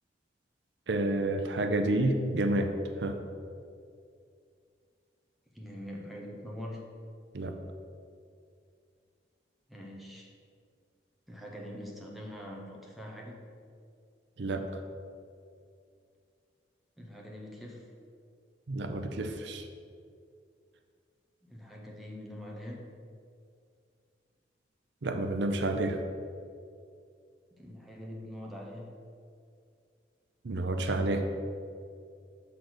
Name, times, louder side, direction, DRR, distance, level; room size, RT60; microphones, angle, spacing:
voice 1, 0.9-2.7 3.0-3.2 7.3-7.5 14.4-14.6 18.7-19.7 25.0-26.0 30.4-31.2, right 2 dB, 80° right, 6 dB, 0.6 m, -29 dB
voice 2, 5.5-6.9 9.7-10.3 11.3-13.5 17.0-17.9 21.4-23.0 27.5-29.0, left 1 dB, ahead, -2 dB, 0.8 m, -44 dB
6.5 x 4.0 x 6.2 m, 2.3 s
head